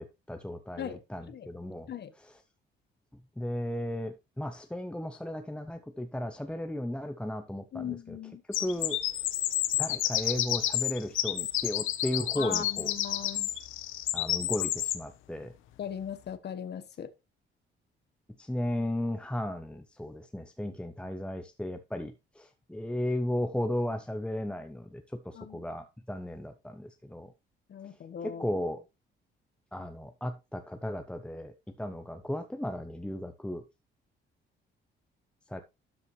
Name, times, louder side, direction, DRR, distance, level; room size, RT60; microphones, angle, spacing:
voice 1, 0.0-1.9 2.2-2.3 3.4-8.2 8.5-9.0 9.8-12.9 14.1-15.5 18.4-27.3 28.2-28.8 29.7-33.6 35.5-35.6, left 1 dB, 5° left, 0.8 m, -35 dB
voice 2, 7.7-8.4 12.4-13.5 15.8-17.1 25.3-25.6 27.7-28.5, left 9 dB, 55° left, 1.3 m, -39 dB
sound 1, 8.5-15.0, left 13 dB, 90° left, 1.0 m, -30 dB
12.5 x 5.7 x 3.2 m
cardioid pair, 90°, 20 cm